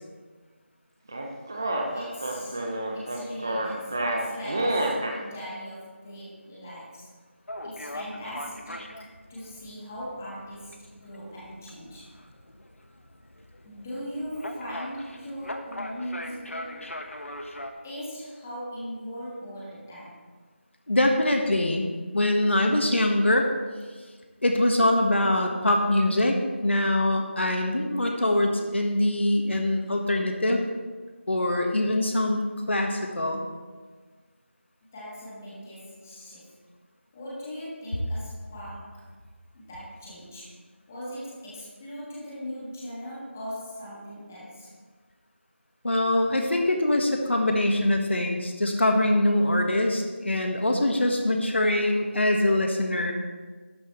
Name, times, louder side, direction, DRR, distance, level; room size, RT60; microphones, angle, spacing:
sound 1, 1.1-5.2, right 1 dB, 15° right, 0.7 m, -28 dB
voice 1, 1.9-7.1 7.6-12.1 13.6-17.0 17.8-20.2 34.9-36.6 37.1-39.0 39.5-40.6 40.9-44.7, equal, 10° left, -8 dB, 1.6 m, -39 dB
sound 2, 7.5-17.7, left 1 dB, 85° left, 1.4 m, -41 dB
voice 2, 20.9-21.9 22.1-23.5 24.4-26.4 26.6-30.6 31.3-33.4 45.8-53.1, left 1 dB, 65° left, 3 dB, 1.5 m, -23 dB
12.5 x 10.0 x 3.2 m, 1.4 s
figure-of-eight pair, 175°, 7 cm